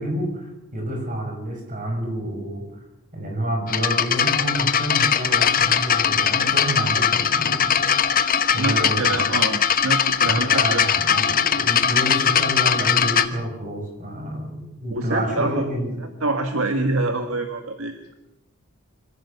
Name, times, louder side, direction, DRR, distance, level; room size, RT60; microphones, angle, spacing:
voice 1, 0.0-2.7 3.1-7.9 8.5-9.3 10.3-16.0, right 1 dB, 35° right, 2 dB, 5.8 m, -28 dB
sound 1, 3.7-13.3, left 7 dB, 40° left, 1.0 m, -20 dB
voice 2, 8.6-10.9 14.9-15.6 16.2-18.1, right 2 dB, 70° right, 6 dB, 1.6 m, -26 dB
25.5 x 15.5 x 7.0 m, 0.90 s
head